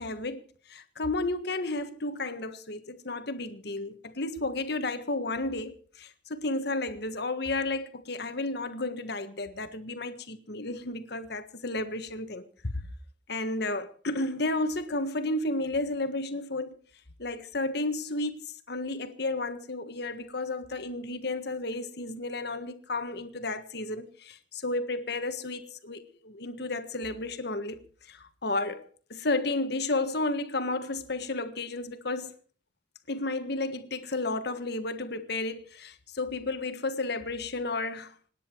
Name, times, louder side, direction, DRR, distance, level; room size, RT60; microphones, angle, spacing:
voice 1, 0.0-12.8 13.3-16.8 17.2-32.3 33.1-38.1, left 2 dB, 60° left, 1.6 m, -32 dB
26.5 x 9.9 x 4.6 m
head